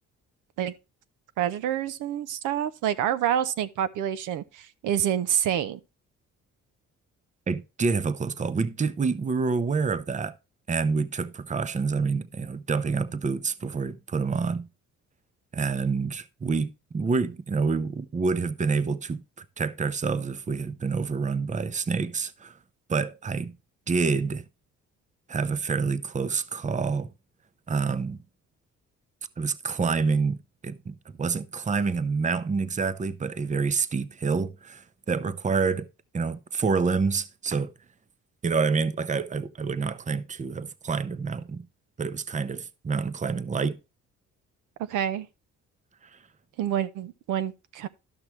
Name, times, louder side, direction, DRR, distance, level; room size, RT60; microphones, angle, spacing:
voice 1, 1.4-5.8 44.9-45.3 46.6-47.9, right 10 dB, 85° right, 0.7 m, -27 dB
voice 2, 7.5-10.4 10.7-14.7 15.5-22.6 22.9-23.6 23.9-24.4 25.3-27.1 27.7-28.2 29.4-30.4 30.6-35.9 36.1-37.7 38.4-41.7 42.0-43.8 46.1-46.2, right 4 dB, 25° right, 0.7 m, -27 dB
12.5 x 6.0 x 3.2 m
cardioid pair, 90°, 30 cm